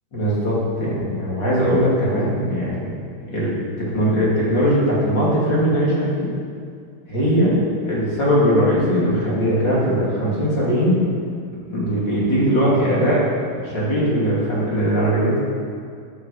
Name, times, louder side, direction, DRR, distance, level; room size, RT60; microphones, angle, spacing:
voice 1, 0.1-2.9 3.2-6.3 7.1-7.6 7.8-11.0 11.7-13.3 13.5-15.4, equal, 30° left, -7 dB, 2.4 m, -20 dB
14.5 x 9.4 x 5.1 m, 2.3 s
omnidirectional pair, 5.9 m